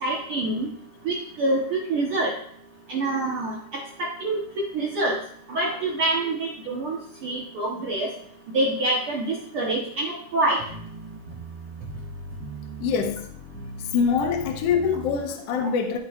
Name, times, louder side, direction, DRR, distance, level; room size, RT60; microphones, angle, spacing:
voice 1, 0.0-0.7 1.0-2.3 2.9-4.4 4.7-5.2 5.5-8.1 8.5-10.6, right 2 dB, 65° right, -3 dB, 1.3 m, -26 dB
sound 1, 10.7-15.2, right 2 dB, 50° right, 1.9 m, -39 dB
voice 2, 12.8-13.3 13.9-16.0, left 6 dB, 75° left, 3 dB, 1.4 m, -24 dB
13.5 x 5.4 x 2.4 m, 0.65 s
omnidirectional pair, 3.9 m